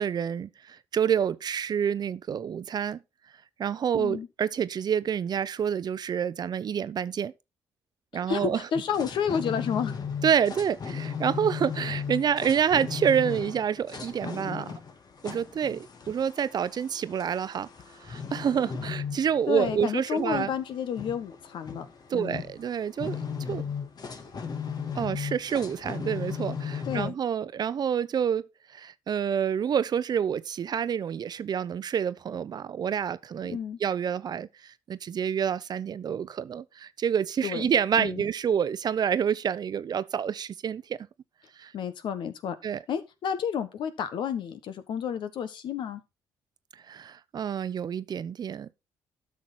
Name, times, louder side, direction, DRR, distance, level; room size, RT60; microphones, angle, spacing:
voice 1, 0.0-3.0 3.6-7.3 8.1-8.6 10.2-14.7 15.2-17.7 18.1-20.5 22.1-23.2 23.5-23.6 24.9-28.5 28.7-41.0 41.6-41.7 42.6-42.8 46.9-48.7, right 8 dB, 50° right, 0.7 m, -28 dB
voice 2, 3.9-4.3 8.1-9.9 19.5-21.9 22.1-22.4 26.8-27.1 33.5-33.8 37.4-37.7 38.0-38.3 41.7-42.6 42.9-46.0, left 7 dB, 65° left, 1.3 m, -31 dB
sound 1, 8.7-27.1, left 6 dB, 50° left, 1.8 m, -36 dB
12.0 x 6.2 x 4.2 m
hypercardioid pair, 50°, 9 cm